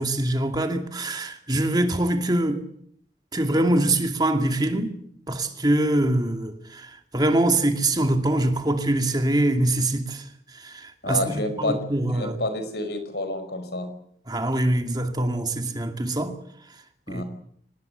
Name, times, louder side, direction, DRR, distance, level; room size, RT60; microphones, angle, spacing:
voice 1, 0.0-2.6 3.3-5.0 5.3-10.2 10.6-12.4 14.3-16.4 17.1-17.2, right 1 dB, 25° right, 2.3 m, -24 dB
voice 2, 11.0-11.8 12.1-13.9 17.1-17.2, left 1 dB, 65° left, 5.1 m, -29 dB
26.0 x 19.5 x 8.1 m
head